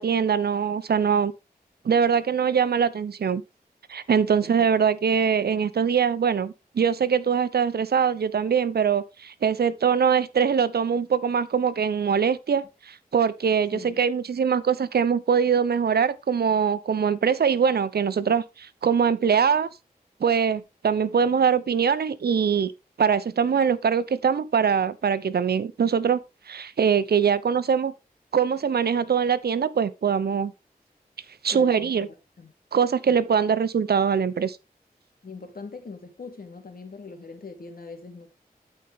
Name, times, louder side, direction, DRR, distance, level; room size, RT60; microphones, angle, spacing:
voice 1, 0.0-1.3 1.8-3.4 3.9-19.7 20.2-22.7 23.0-26.2 26.5-27.9 28.3-30.5 31.4-32.1 32.7-34.6, right 7 dB, 80° right, 0.8 m, -23 dB
voice 2, 31.5-32.5 35.2-38.3, left 4 dB, 70° left, 2.9 m, -42 dB
13.0 x 5.4 x 3.6 m
cardioid pair, 45°, 16 cm